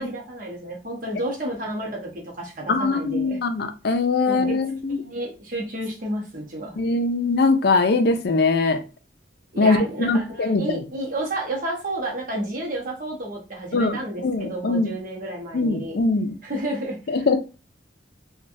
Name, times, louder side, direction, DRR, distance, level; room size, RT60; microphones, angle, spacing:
voice 1, 0.0-3.4 4.2-4.5 5.0-6.8 9.5-16.0 16.4-17.4, right 1 dB, 50° right, 0.9 m, -31 dB
voice 2, 2.7-5.0 6.8-8.8 9.6-10.8 13.7-14.9 15.5-16.3 17.1-17.4, left 3 dB, 65° left, 0.5 m, -22 dB
3.0 x 2.2 x 2.6 m
head